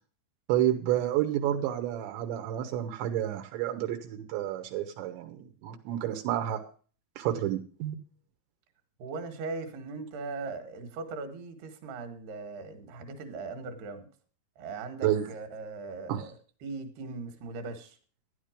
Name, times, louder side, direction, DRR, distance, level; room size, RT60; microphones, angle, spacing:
voice 1, 0.5-6.6 7.2-8.0 15.0-15.3 16.1-16.3, right 12 dB, 85° right, 4 dB, 3.4 m, -30 dB
voice 2, 9.0-14.1 14.6-16.4 16.6-18.0, right 3 dB, 70° right, 7 dB, 3.5 m, -39 dB
13.0 x 10.5 x 5.0 m, 0.39 s
omnidirectional pair, 5.0 m